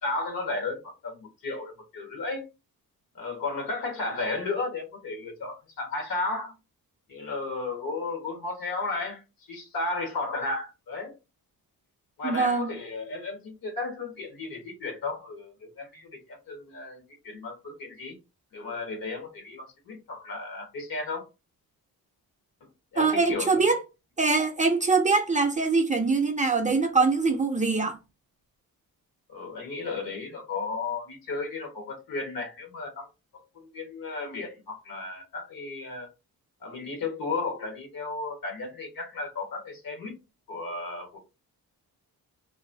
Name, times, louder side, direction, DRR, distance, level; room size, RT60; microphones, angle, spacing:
voice 1, 0.0-2.5 3.1-6.5 7.1-9.2 9.5-11.1 12.2-18.2 18.5-21.2 22.6-23.6 29.3-33.1 33.5-36.1 36.6-40.2 40.5-41.2, left 3 dB, 70° left, 1.5 m, -34 dB
voice 2, 12.2-12.7 23.0-23.8 24.2-27.9, right 4 dB, 20° right, 0.5 m, -23 dB
3.1 x 2.5 x 2.6 m
cardioid pair, 115°, 36 cm